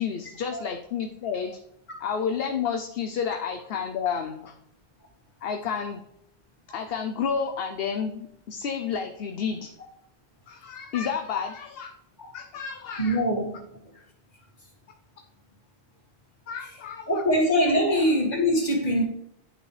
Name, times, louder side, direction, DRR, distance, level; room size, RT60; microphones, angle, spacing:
voice 1, 0.0-1.6 2.0-4.5 5.4-6.0 6.7-9.7 10.5-11.9 12.3-13.2 16.5-17.2, left 6 dB, 65° left, 0.9 m, -30 dB
voice 2, 13.0-14.0 17.1-19.0, equal, 40° left, 2.1 m, -23 dB
11.0 x 6.0 x 3.3 m
omnidirectional pair, 1.1 m